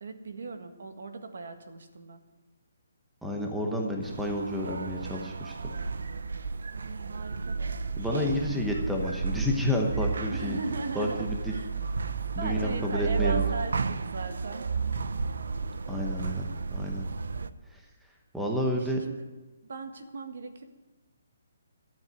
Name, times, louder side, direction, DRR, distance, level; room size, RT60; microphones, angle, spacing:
voice 1, 0.0-2.2 6.7-7.7 10.3-11.7 12.4-14.7 18.8-19.3 19.6-20.6, right 4 dB, 60° right, 7 dB, 1.6 m, -38 dB
voice 2, 3.2-5.5 8.0-10.6 10.9-11.5 12.3-13.5 15.9-17.0 17.7-17.8 18.3-19.0, left 1 dB, ahead, 0 dB, 0.8 m, -30 dB
sound 1, 4.0-17.5, right 4 dB, 80° right, 0.7 m, -32 dB
12.5 x 7.9 x 9.6 m, 1.1 s
hypercardioid pair, 180°, 0 cm